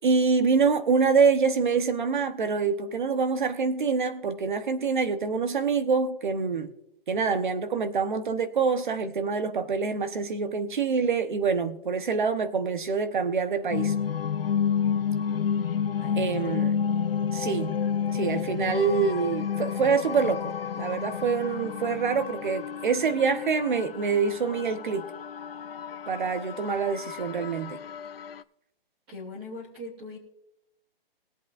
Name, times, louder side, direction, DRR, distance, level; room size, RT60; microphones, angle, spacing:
voice 1, 0.0-6.7 7.1-13.9 16.2-16.8 17.3-17.7 18.1-25.0 26.1-27.8, right 5 dB, 55° right, 1.2 m, -26 dB
sound 1, 13.7-28.4, left 7 dB, 75° left, 0.7 m, -30 dB
voice 2, 16.0-16.7 29.1-30.2, left 2 dB, 10° right, 0.8 m, -41 dB
21.5 x 8.3 x 2.6 m
hypercardioid pair, 175°, 29 cm